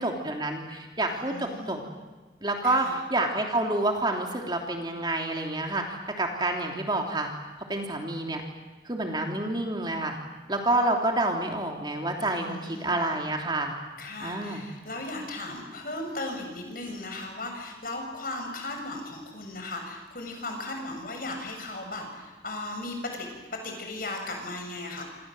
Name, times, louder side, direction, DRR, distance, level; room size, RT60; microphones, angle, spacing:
voice 1, 0.0-1.8 2.4-7.3 7.7-8.4 8.8-10.2 10.5-13.7 14.2-14.6, right 2 dB, 25° right, 2 dB, 3.1 m, -28 dB
voice 2, 1.1-1.8 2.6-3.0 12.2-13.0 14.0-25.0, left 2 dB, 50° left, 3 dB, 7.2 m, -37 dB
27.5 x 27.5 x 7.9 m, 1.3 s
head